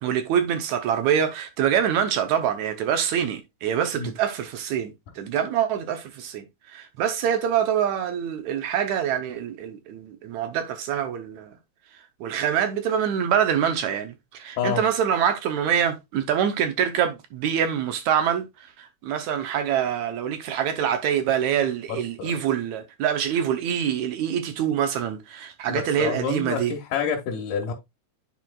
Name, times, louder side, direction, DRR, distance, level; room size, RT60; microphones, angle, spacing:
voice 1, 0.0-11.5 12.2-18.5 18.8-26.7, right 9 dB, 75° right, 2.0 m, -25 dB
voice 2, 21.9-22.4 25.7-27.7, left 6 dB, 90° left, 2.7 m, -28 dB
10.5 x 4.3 x 2.3 m
omnidirectional pair, 3.6 m